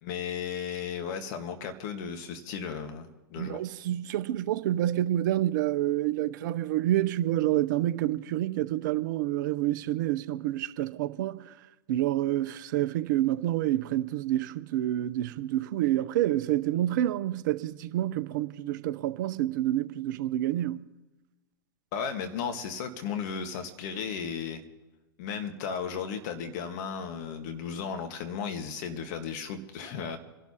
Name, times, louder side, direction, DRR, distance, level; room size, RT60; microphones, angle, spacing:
voice 1, 0.0-3.6 21.9-24.6 25.2-30.2, left 6 dB, 50° left, 1.5 m, -35 dB
voice 2, 3.4-11.5 11.9-20.9, right 13 dB, 55° right, 0.7 m, -28 dB
27.0 x 12.0 x 2.9 m
hypercardioid pair, 105°, 12 cm